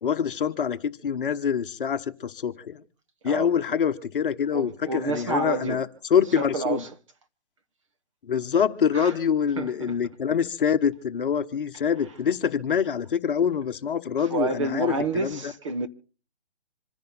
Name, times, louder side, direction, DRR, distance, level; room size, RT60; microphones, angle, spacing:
voice 1, 0.0-2.8 3.2-6.8 8.2-15.5, left 7 dB, 50° left, 1.1 m, -25 dB
voice 2, 4.5-5.8 6.4-6.9 8.9-9.2 9.6-9.9 14.2-15.9, right 3 dB, 30° right, 0.9 m, -29 dB
26.5 x 10.5 x 4.1 m
hypercardioid pair, 160°, 34 cm